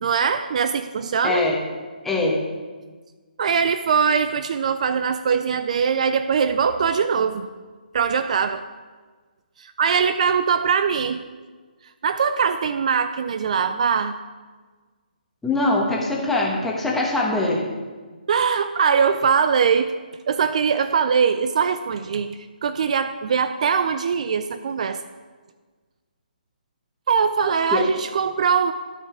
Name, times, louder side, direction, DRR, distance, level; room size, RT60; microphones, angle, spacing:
voice 1, 0.0-1.5 3.4-7.5 7.9-8.6 9.6-11.2 12.0-14.1 18.3-19.9 20.3-25.0 27.1-28.7, right 6 dB, 50° right, 11 dB, 0.4 m, -21 dB
voice 2, 1.2-1.6 2.0-2.4 15.4-17.6 27.7-27.8, left 2 dB, 5° left, -2 dB, 1.2 m, -22 dB
12.0 x 5.3 x 5.0 m, 1.4 s
hypercardioid pair, 160°, 5 cm